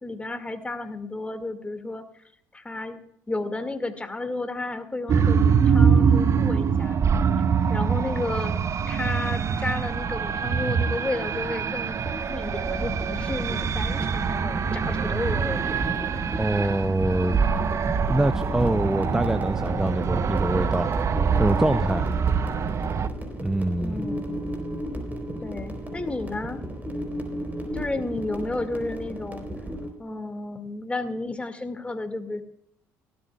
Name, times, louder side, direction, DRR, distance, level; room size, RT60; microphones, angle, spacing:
voice 1, 0.0-2.2 2.5-3.0 3.3-7.0 7.7-8.6 8.9-15.8 23.8-24.4 25.4-26.6 27.7-29.5 30.0-32.4, left 2 dB, 15° left, 8 dB, 2.0 m, -32 dB
sound 1, 5.1-23.1, right 6 dB, 45° right, 0.7 m, -24 dB
sound 2, 12.2-29.9, right 1 dB, 25° right, 3.7 m, -34 dB
voice 2, 16.4-17.4 18.1-20.9 21.4-22.1 23.4-24.0, right 1 dB, 5° right, 12 dB, 0.5 m, -24 dB
17.5 x 13.0 x 2.3 m, 0.71 s
supercardioid pair, 70°, 7 cm